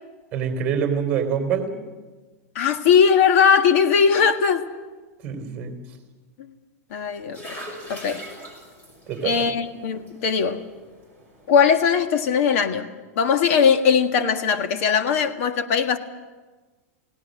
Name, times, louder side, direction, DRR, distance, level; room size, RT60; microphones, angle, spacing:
voice 1, 0.3-1.7 5.2-5.8 9.1-9.4, right 7 dB, 20° right, 3.3 m, -25 dB
voice 2, 2.5-4.7 6.9-7.6 7.9-8.2 9.2-10.6 11.5-12.9 13.1-16.0, left 6 dB, 55° left, 1.7 m, -19 dB
sound 1, 6.9-12.5, equal, 20° left, 6.3 m, -43 dB
29.0 x 18.0 x 6.5 m
supercardioid pair, 155°, 8 cm